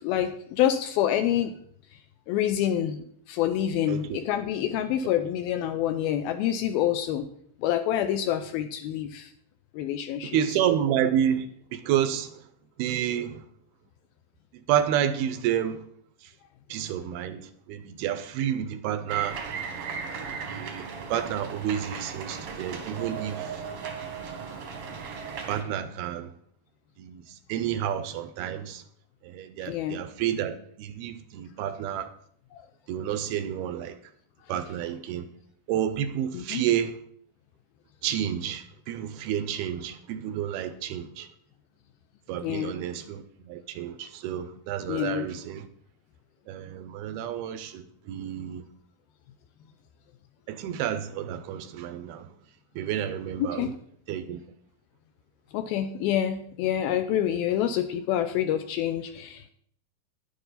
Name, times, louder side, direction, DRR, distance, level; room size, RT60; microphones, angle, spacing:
voice 1, 0.0-1.5 1.9-2.0 2.3-7.3 7.6-9.3 9.7-10.4 29.6-30.0 32.5-32.7 36.3-36.6 42.4-42.8 44.9-45.3 53.4-53.8 55.5-59.5, left 11 dB, 80° left, 2.2 m, -27 dB
voice 2, 3.9-4.2 10.3-12.4 12.8-13.4 14.7-15.8 16.2-16.3 16.7-19.4 20.0-23.6 24.2-24.6 25.5-26.3 27.0-28.8 29.2-32.1 32.9-34.0 34.5-35.3 35.7-37.0 38.0-41.3 42.3-45.7 46.5-48.7 50.5-52.3 52.8-53.7 54.1-54.4, right 10 dB, 80° right, 2.4 m, -30 dB
sound 1, 19.1-25.6, right 5 dB, 60° right, 1.5 m, -37 dB
11.5 x 10.0 x 4.1 m
omnidirectional pair, 4.8 m